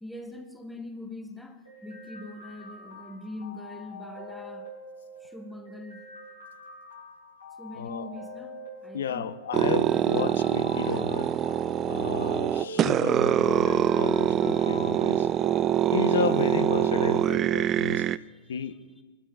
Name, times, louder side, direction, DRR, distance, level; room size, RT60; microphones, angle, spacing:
voice 1, 0.0-4.7 5.2-6.1 7.6-9.4 9.9-10.4 11.9-12.1 17.8-19.0, left 1 dB, 5° left, 0.9 m, -43 dB
sound 1, 1.7-17.6, right 1 dB, 90° left, 5.0 m, -43 dB
voice 2, 7.8-8.1 8.9-11.3 11.9-15.3 15.9-18.1 18.5-18.8, left 7 dB, 75° left, 0.6 m, -33 dB
sound 2, 9.5-18.2, right 10 dB, 30° right, 0.3 m, -24 dB
27.5 x 12.5 x 2.3 m
hypercardioid pair, 110°, 0 cm